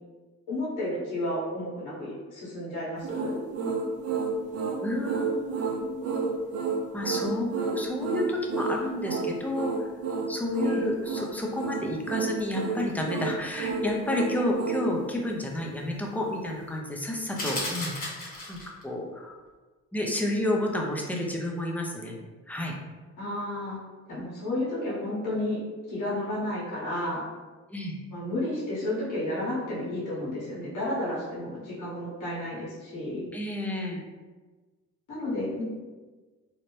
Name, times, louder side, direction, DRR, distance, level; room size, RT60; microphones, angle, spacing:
voice 1, 0.5-3.4 10.6-10.8 23.2-23.8 24.1-25.6 25.9-27.2 28.1-33.3 35.1-35.6, left 1 dB, 80° left, -8 dB, 1.2 m, -32 dB
sound 1, 3.0-14.9, right 4 dB, 55° right, 0.5 m, -30 dB
voice 2, 4.8-6.3 6.9-9.7 10.3-19.4 19.9-22.1 22.5-22.7 27.7-27.9 33.3-34.0, left 1 dB, 5° left, -1 dB, 0.5 m, -30 dB
sound 2, 17.4-18.8, left 1 dB, 30° left, 1.0 m, -34 dB
2.7 x 2.0 x 3.1 m, 1.3 s
cardioid pair, 90°, 30 cm